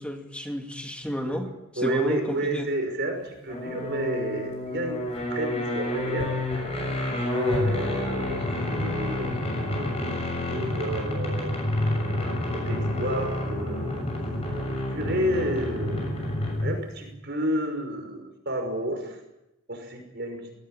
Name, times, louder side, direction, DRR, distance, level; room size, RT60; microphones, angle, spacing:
voice 1, 0.0-1.5 1.8-2.7, equal, 5° left, 4 dB, 2.3 m, -31 dB
voice 2, 1.7-6.3 7.3-11.6 11.9-13.9 14.8-19.2 19.7-20.4, right 1 dB, 50° right, 5 dB, 5.8 m, -31 dB
sound 1, 3.5-16.9, left 1 dB, 25° left, 6.8 m, -29 dB
19.5 x 18.5 x 8.9 m, 0.90 s
head